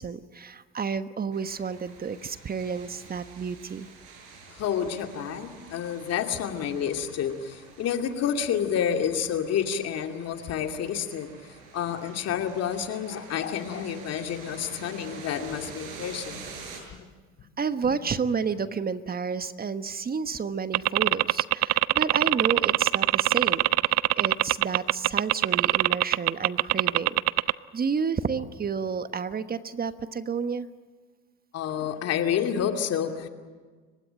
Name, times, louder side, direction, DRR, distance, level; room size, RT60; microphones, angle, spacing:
voice 1, 0.0-3.9 17.6-30.7, right 6 dB, 30° right, 11 dB, 1.2 m, -31 dB
sound 1, 1.3-16.8, right 4 dB, 75° right, 7.1 m, -47 dB
voice 2, 4.5-11.3 11.7-16.5 31.5-33.3, left 8 dB, 55° left, 5 dB, 2.6 m, -29 dB
sound 2, 20.7-27.5, right 18 dB, 60° right, 0.6 m, -22 dB
30.0 x 16.0 x 8.9 m, 1.4 s
hypercardioid pair, 75°, 30 cm